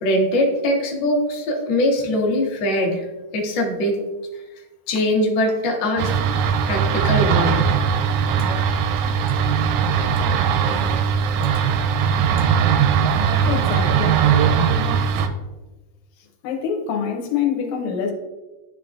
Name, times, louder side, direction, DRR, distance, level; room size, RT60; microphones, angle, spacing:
voice 1, 0.0-3.0 3.3-4.0 4.9-6.1 6.7-7.7, left 1 dB, 55° left, -1 dB, 1.3 m, -21 dB
sound 1, 6.0-15.3, right 7 dB, 85° right, 1.9 m, -19 dB
voice 2, 13.5-14.3 16.4-18.1, left 7 dB, 80° left, 3 dB, 2.1 m, -25 dB
10.5 x 3.6 x 2.5 m, 1.1 s
omnidirectional pair, 3.3 m